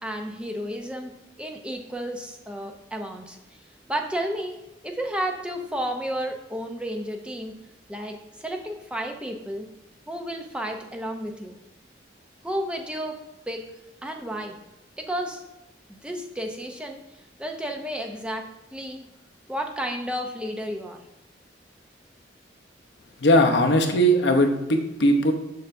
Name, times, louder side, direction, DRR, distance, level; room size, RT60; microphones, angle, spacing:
voice 1, 0.0-1.1 1.4-3.4 3.9-4.6 4.8-7.5 7.9-9.7 10.1-11.6 12.4-13.2 13.5-13.6 14.0-14.6 15.0-15.4 15.9-17.0 17.4-18.4 18.7-19.1 19.5-21.0, equal, 5° right, 3 dB, 0.5 m, -32 dB
voice 2, 23.2-25.3, equal, 75° left, 4 dB, 0.8 m, -19 dB
6.6 x 6.5 x 2.6 m, 0.95 s
head